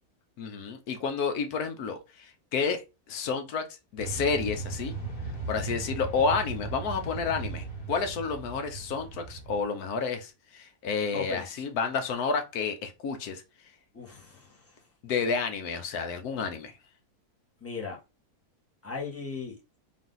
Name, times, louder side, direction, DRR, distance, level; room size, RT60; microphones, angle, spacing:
voice 1, 0.4-2.8 3.1-3.6 3.9-4.9 5.5-13.4 15.0-16.7, left 5 dB, 75° left, 1.2 m, -30 dB
sound 1, 4.0-9.6, right 3 dB, 60° left, 2.2 m, -37 dB
voice 2, 11.1-11.5 13.9-14.5 17.6-18.0 18.8-19.6, left 4 dB, 10° left, 0.9 m, -37 dB
3.8 x 2.7 x 3.8 m
omnidirectional pair, 1.7 m